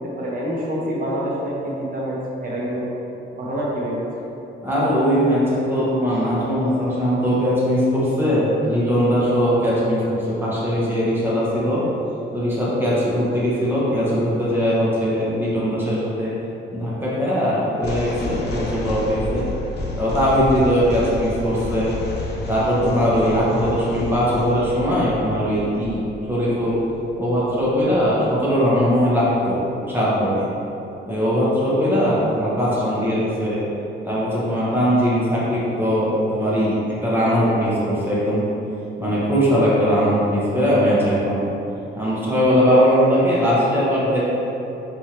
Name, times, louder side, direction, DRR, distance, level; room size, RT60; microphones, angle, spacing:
voice 1, 0.0-2.9 3.3-4.1, equal, 45° right, -5 dB, 1.2 m, -26 dB
voice 2, 4.6-11.8 12.3-16.3 16.7-19.5 20.0-21.9 22.5-26.8 27.2-29.6 29.9-30.5 31.1-33.6 34.0-38.4 39.0-41.4 41.9-44.2, equal, 10° right, -9 dB, 1.2 m, -20 dB
sound 1, 17.8-29.1, left 2 dB, 55° left, 0.6 m, -32 dB
4.5 x 3.4 x 2.9 m, 2.9 s
cardioid pair, 90°, 20 cm